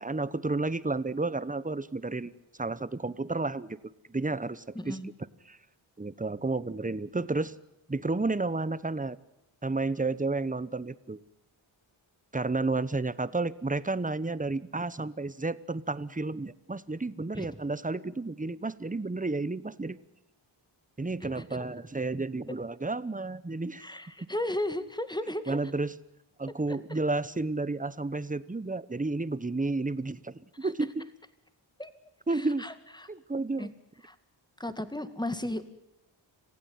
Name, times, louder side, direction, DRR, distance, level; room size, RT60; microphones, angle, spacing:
voice 1, 0.0-2.3 2.6-3.8 4.1-5.0 5.5-5.6 6.0-7.5 7.9-9.2 9.6-11.2 12.3-20.0 21.0-23.9 25.5-25.9 26.4-31.1 32.3-32.7 33.1-33.7, right 3 dB, 15° right, 17 dB, 1.0 m, -31 dB
voice 2, 4.7-5.1 17.3-17.5 21.2-21.4 22.5-22.6 23.8-25.6 26.7-26.8 30.6-30.7 31.8-31.9 32.3-33.1 33.6-33.7 34.0-34.2 34.6-35.6, left 1 dB, 10° left, 10 dB, 2.1 m, -35 dB
26.5 x 16.0 x 9.6 m, 0.86 s
cardioid pair, 55°, 48 cm